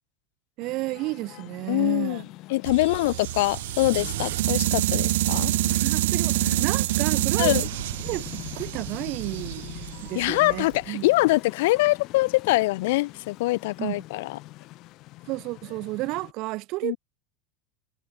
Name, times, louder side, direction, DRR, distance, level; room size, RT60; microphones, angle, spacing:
sound 1, 0.6-16.3, left 18 dB, 35° left, 3.6 m, -43 dB
voice 1, 0.6-2.2 5.7-7.5 8.0-11.1 13.8-14.0 15.3-17.0, right 21 dB, 40° right, 3.9 m, -32 dB
voice 2, 1.7-5.5 7.4-7.7 10.1-14.4 16.8-17.0, left 20 dB, 65° left, 3.5 m, -24 dB
sound 2, 2.6-10.7, right 16 dB, 85° right, 2.9 m, -27 dB
supercardioid pair, 180°, 0 cm